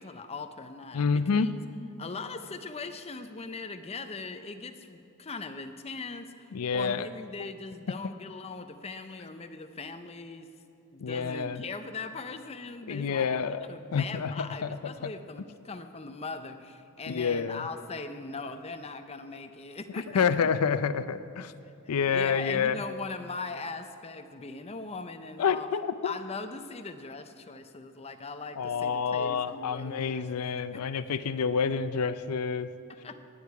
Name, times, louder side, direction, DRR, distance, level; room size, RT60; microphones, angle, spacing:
voice 1, 0.0-1.5 2.0-10.5 10.9-20.5 21.8-25.7 26.0-30.3 30.7-30.8 32.9-33.2, left 4 dB, 30° left, 8 dB, 0.6 m, -40 dB
voice 2, 0.9-1.5 6.5-7.1 7.4-7.5 11.0-11.6 12.9-13.6 13.9-15.1 17.1-17.7 20.1-21.5 21.9-22.8 25.4-26.1 28.6-32.7, left 6 dB, 85° left, 13 dB, 0.5 m, -28 dB
17.5 x 10.0 x 4.8 m, 2.8 s
head